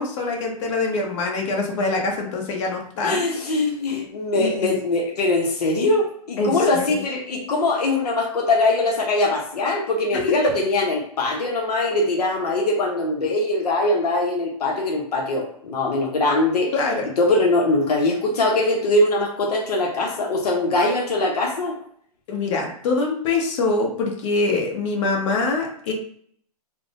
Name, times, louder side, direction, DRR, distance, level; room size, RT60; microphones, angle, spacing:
voice 1, 0.0-3.2 4.4-4.7 6.4-7.0 10.4-10.5 16.7-17.1 22.3-25.9, left 3 dB, 50° left, 0 dB, 0.9 m, -24 dB
voice 2, 3.0-16.7 17.0-21.7, left 2 dB, 85° left, 0 dB, 0.7 m, -22 dB
3.5 x 2.0 x 2.5 m, 0.62 s
hypercardioid pair, 135°, 20 cm